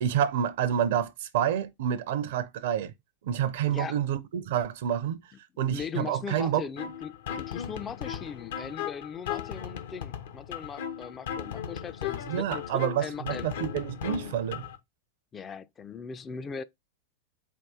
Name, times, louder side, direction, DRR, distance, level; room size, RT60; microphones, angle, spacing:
voice 1, 0.0-2.9 3.2-5.2 5.6-6.6 12.3-14.6, right 9 dB, 55° right, 0.5 m, -28 dB
voice 2, 5.7-13.5 15.3-16.6, left 6 dB, 20° left, 0.3 m, -39 dB
sound 1, 6.8-14.8, left 8 dB, 60° left, 0.6 m, -37 dB
4.6 x 2.3 x 3.6 m
figure-of-eight pair, 90°, 0 cm